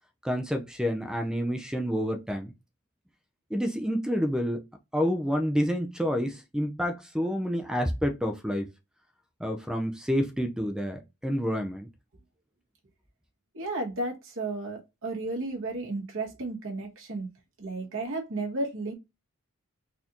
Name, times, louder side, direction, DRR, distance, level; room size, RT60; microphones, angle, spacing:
voice 1, 0.2-2.5 3.5-4.6 4.9-8.7 9.4-11.9, equal, 5° right, 0.4 m, -28 dB
voice 2, 13.5-17.3 17.6-18.9, right 2 dB, 60° right, 1.4 m, -33 dB
4.0 x 2.6 x 2.9 m
head